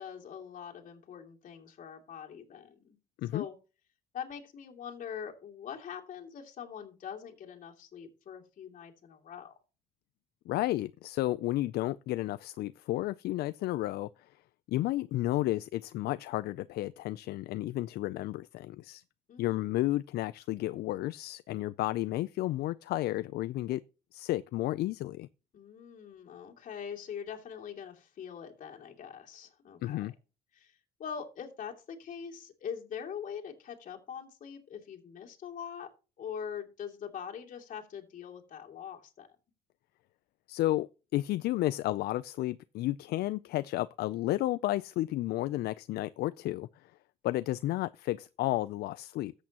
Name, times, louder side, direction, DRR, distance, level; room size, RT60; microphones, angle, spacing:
voice 1, 0.0-3.0 3.3-3.5 4.1-9.5 19.3-19.7 25.5-30.1 30.5-30.7 31.0-35.9 36.2-39.3, left 7 dB, 50° left, 2.7 m, -43 dB
voice 2, 10.5-14.1 14.7-19.0 19.4-23.8 24.1-25.3 29.8-30.1 40.5-46.9 47.2-49.3, left 16 dB, 70° left, 0.4 m, -32 dB
13.5 x 8.2 x 2.9 m
cardioid pair, 110°, 17 cm